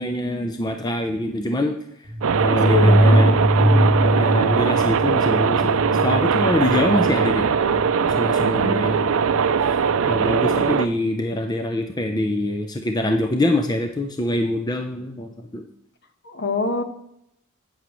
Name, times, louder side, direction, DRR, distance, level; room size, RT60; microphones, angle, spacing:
voice 1, 0.0-1.7 2.4-7.5 8.2-9.2 10.1-15.6, left 1 dB, 20° left, 4 dB, 0.6 m, -25 dB
sound 1, 2.1-10.5, equal, 40° right, 2.9 m, -22 dB
sound 2, 2.2-10.9, right 6 dB, 75° right, 0.5 m, -20 dB
voice 2, 2.5-3.2 8.6-8.8 16.2-16.8, left 2 dB, 55° left, 6 dB, 1.1 m, -24 dB
11.0 x 8.8 x 3.1 m, 0.79 s
head